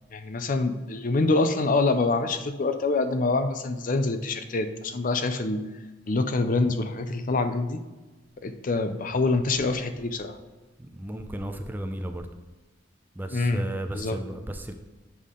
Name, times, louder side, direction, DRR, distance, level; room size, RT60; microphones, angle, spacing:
voice 1, 0.1-5.6 6.1-7.8 8.4-10.3 13.3-13.6 13.9-14.2, left 3 dB, 45° left, 9 dB, 0.5 m, -25 dB
voice 2, 10.8-12.3 13.2-14.7, right 1 dB, 10° right, 5 dB, 0.5 m, -34 dB
8.3 x 5.5 x 3.7 m, 1.2 s
head